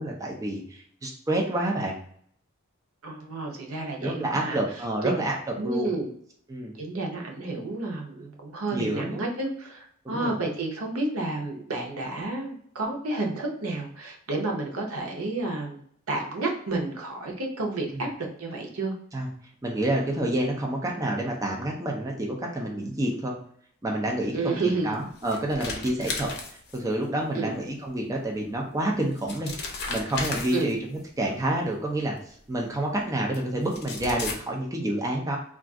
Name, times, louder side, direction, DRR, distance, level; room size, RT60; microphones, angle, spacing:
voice 1, 0.0-1.9 4.0-5.3 5.6-5.9 6.5-6.8 8.7-9.2 10.0-10.4 17.9-18.0 19.1-19.3 19.6-23.3 23.8-26.3 26.7-29.5 29.9-35.4, right 1 dB, 15° right, -1 dB, 0.4 m, -28 dB
voice 2, 3.0-4.6 5.0-5.2 5.6-6.1 6.8-15.8 16.1-18.9 24.3-25.0 27.3-27.5 30.5-30.7, right 2 dB, 85° right, 1 dB, 0.7 m, -30 dB
sound 1, 24.9-27.0 28.4-28.5 29.0-31.0 32.2-32.3 33.3-33.4 33.6-34.3, left 3 dB, 50° left, 0.6 m, -35 dB
2.4 x 2.4 x 3.5 m, 0.62 s
head